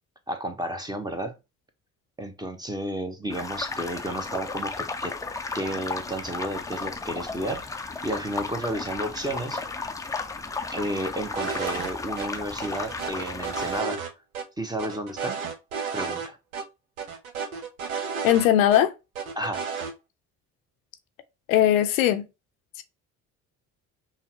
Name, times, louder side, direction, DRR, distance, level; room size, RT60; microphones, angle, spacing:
voice 1, 0.3-1.3 2.2-5.2 5.5-7.6 8.0-9.6 10.7-14.0 14.6-15.4 15.9-16.4 19.4-19.6, right 1 dB, 10° right, 0.8 m, -32 dB
sound 1, 3.3-13.8, left 4 dB, 10° left, 0.4 m, -34 dB
sound 2, 11.3-11.9 12.2-12.3 12.6-14.1 14.3-14.4 14.8-16.3 16.5-16.6 17.0-18.8 19.1-19.9, right 6 dB, 75° right, 0.8 m, -32 dB
voice 2, 18.2-18.9 21.5-22.2, left 11 dB, 70° left, 0.6 m, -19 dB
5.5 x 2.0 x 2.8 m
figure-of-eight pair, 50°, 42 cm